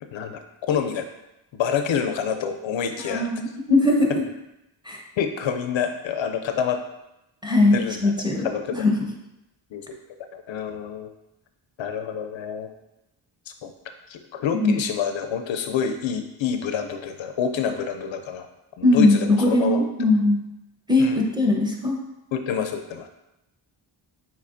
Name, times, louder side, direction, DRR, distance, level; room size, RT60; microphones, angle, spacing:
voice 1, 0.0-1.1 1.5-3.3 5.2-6.8 7.7-8.1 8.4-8.9 9.7-10.0 10.3-11.1 11.8-12.7 13.5-13.7 14.1-18.5 18.8-19.9 21.0-21.2 22.3-23.1, left 7 dB, 70° left, 7 dB, 0.5 m, -27 dB
voice 2, 3.0-4.1 4.8-5.0 7.4-9.0 14.5-14.8 18.8-20.4 20.9-22.0, left 2 dB, 10° right, -1 dB, 1.0 m, -20 dB
6.7 x 2.9 x 2.6 m, 0.91 s
cardioid pair, 60°, 48 cm